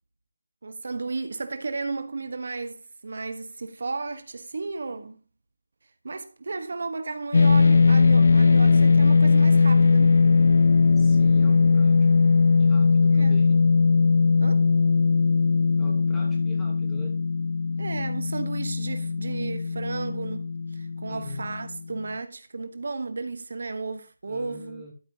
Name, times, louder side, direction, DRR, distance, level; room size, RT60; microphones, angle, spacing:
voice 1, 0.6-5.2 6.0-10.2 13.1-13.4 14.4-14.6 17.8-24.8, right 3 dB, 60° right, 1.1 m, -34 dB
sound 1, 7.3-21.8, left 4 dB, 55° left, 0.3 m, -19 dB
voice 2, 11.0-12.3 12.6-13.7 15.8-17.2 21.1-21.5 24.3-24.9, left 1 dB, 5° left, 2.5 m, -42 dB
12.5 x 7.5 x 2.8 m
figure-of-eight pair, 165°, 0 cm